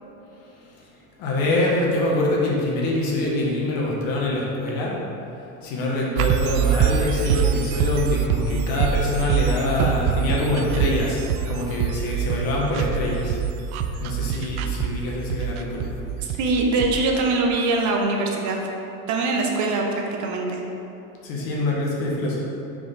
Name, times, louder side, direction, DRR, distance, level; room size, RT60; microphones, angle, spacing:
voice 1, 1.2-5.1 5.5-11.2 11.5-13.4 14.0-15.9 21.2-22.4, left 2 dB, 55° left, -3 dB, 1.2 m, -25 dB
sound 1, 6.2-17.1, right 7 dB, 90° right, 0.5 m, -24 dB
voice 2, 16.2-18.6 19.1-20.6, right 3 dB, 45° right, 1 dB, 0.9 m, -23 dB
5.0 x 3.9 x 5.0 m, 2.8 s
supercardioid pair, 130°, 42 cm